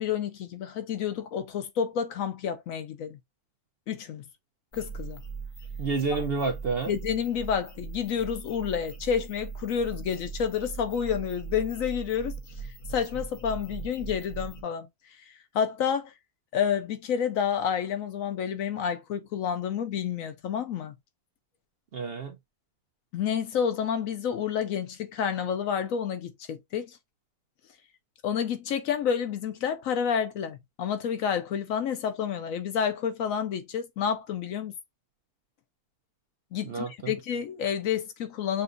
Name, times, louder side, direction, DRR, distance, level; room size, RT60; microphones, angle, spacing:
voice 1, 0.0-3.2 3.9-4.2 4.7-5.2 6.9-12.3 12.9-14.9 15.3-16.1 16.5-20.9 23.1-27.0 28.2-34.7 36.5-38.6, left 8 dB, 70° left, 1.0 m, -29 dB
sound 1, 4.7-14.6, right 5 dB, 35° left, 0.8 m, -40 dB
voice 2, 5.8-6.9 21.9-22.4 36.6-37.1, right 4 dB, 55° right, 0.7 m, -29 dB
6.8 x 2.3 x 2.5 m
omnidirectional pair, 1.6 m